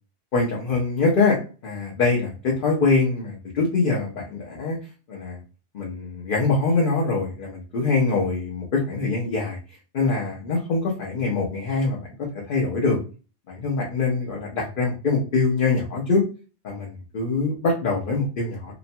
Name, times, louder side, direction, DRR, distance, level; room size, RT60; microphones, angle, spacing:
voice 1, 0.3-4.8 5.1-5.4 5.7-9.6 9.9-13.0 13.5-16.2 16.6-18.7, left 3 dB, 55° left, -3 dB, 0.8 m, -24 dB
2.9 x 2.1 x 2.6 m, 0.34 s
omnidirectional pair, 1.2 m